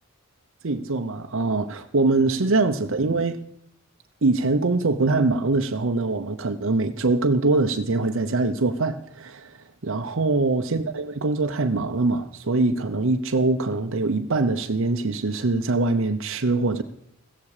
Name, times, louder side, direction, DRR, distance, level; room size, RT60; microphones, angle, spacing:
voice 1, 0.6-3.4 4.2-9.6 9.8-16.8, right 3 dB, 65° right, 0.8 m, -23 dB
16.0 x 14.5 x 4.9 m
head